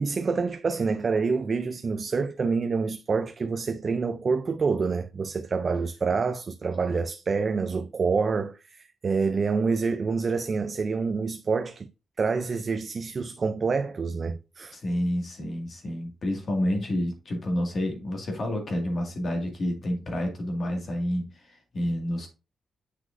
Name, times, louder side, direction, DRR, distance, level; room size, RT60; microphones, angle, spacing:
voice 1, 0.0-11.9 12.2-14.8, right 4 dB, 35° right, 0.4 m, -27 dB
voice 2, 14.7-22.3, left 1 dB, 40° left, 1.9 m, -29 dB
7.7 x 6.0 x 2.5 m
wide cardioid pair, 165°, 0 cm